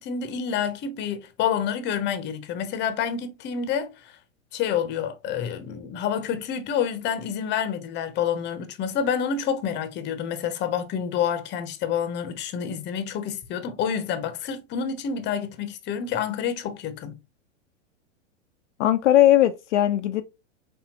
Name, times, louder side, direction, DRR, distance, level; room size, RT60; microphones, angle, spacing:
voice 1, 0.0-4.2 4.5-17.2, left 8 dB, 30° left, 0.8 m, -28 dB
voice 2, 18.8-20.2, left 13 dB, 70° left, 0.5 m, -19 dB
4.3 x 3.3 x 2.9 m
hypercardioid pair, 100°, 37 cm